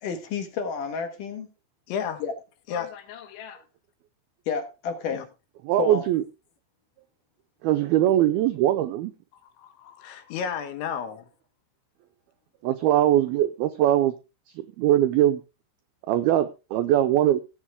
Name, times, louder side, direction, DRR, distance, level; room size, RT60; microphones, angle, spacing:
voice 1, 0.0-1.5 2.2-2.3 4.5-5.2 5.8-6.0, left 6 dB, 60° left, 6 dB, 2.6 m, -30 dB
voice 2, 1.9-2.2 2.7-3.6 5.1-5.2 9.6-9.8 10.0-11.3, left 7 dB, 80° left, 7 dB, 3.9 m, -33 dB
voice 3, 5.6-6.2 7.6-9.1 12.6-14.1 14.6-15.4 16.1-17.4, right 12 dB, 85° right, 10 dB, 2.1 m, -21 dB
16.5 x 8.1 x 3.6 m, 0.29 s
omnidirectional pair, 5.3 m